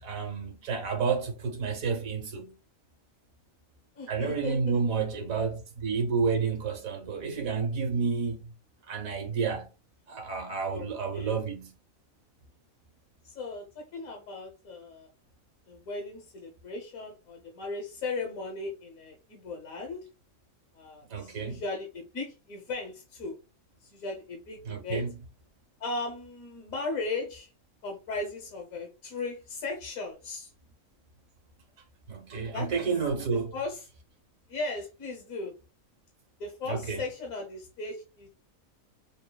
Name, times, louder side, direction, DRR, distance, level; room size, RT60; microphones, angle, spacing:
voice 1, 0.0-2.5 4.1-8.5 8.9-9.7 10.1-11.7 21.1-21.6 24.6-25.1 32.1-33.5 36.6-37.0, right 5 dB, 80° right, 1.5 m, -30 dB
voice 2, 4.0-5.0 10.7-11.4 13.2-15.1 15.7-20.1 20.7-23.3 23.8-25.1 25.8-27.5 27.8-30.5 32.5-32.9 33.5-33.8 34.5-35.5 36.4-38.3, left 3 dB, 85° left, 1.5 m, -37 dB
6.4 x 2.3 x 2.2 m
omnidirectional pair, 1.4 m